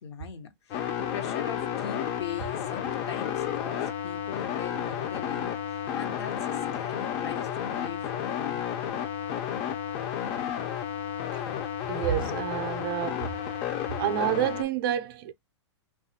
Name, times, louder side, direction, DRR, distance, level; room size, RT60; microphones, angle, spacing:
voice 1, 0.0-8.6, left 7 dB, 65° left, 0.8 m, -41 dB
sound 1, 0.7-14.6, left 9 dB, 35° left, 0.5 m, -32 dB
voice 2, 11.9-13.3 14.0-15.3, right 11 dB, 50° right, 0.5 m, -29 dB
2.6 x 2.3 x 2.7 m
hypercardioid pair, 120°, 15 cm